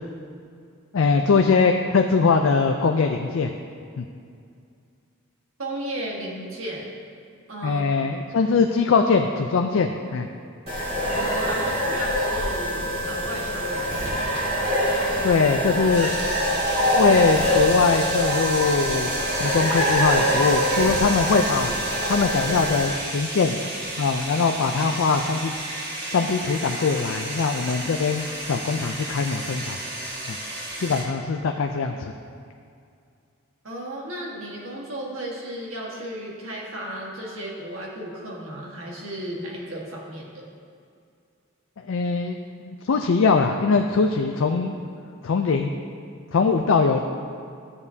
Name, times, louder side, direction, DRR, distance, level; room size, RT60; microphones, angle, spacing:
voice 1, 0.9-3.5 4.0-4.1 7.6-10.3 15.2-16.1 17.0-21.7 22.1-23.6 24.0-25.5 26.1-29.8 30.3-30.4 30.8-32.1 41.9-42.4 42.6-44.8 45.2-45.8 46.3-47.0, left 4 dB, 65° left, 4 dB, 0.4 m, -22 dB
voice 2, 5.6-6.9 7.5-7.9 11.1-14.6 33.6-40.5, right 1 dB, 70° right, -2 dB, 1.5 m, -34 dB
sound 1, 10.7-22.8, equal, 25° right, 1.9 m, -24 dB
sound 2, 15.9-31.0, right 1 dB, 45° right, 1.6 m, -33 dB
13.5 x 7.0 x 2.7 m, 2.4 s
head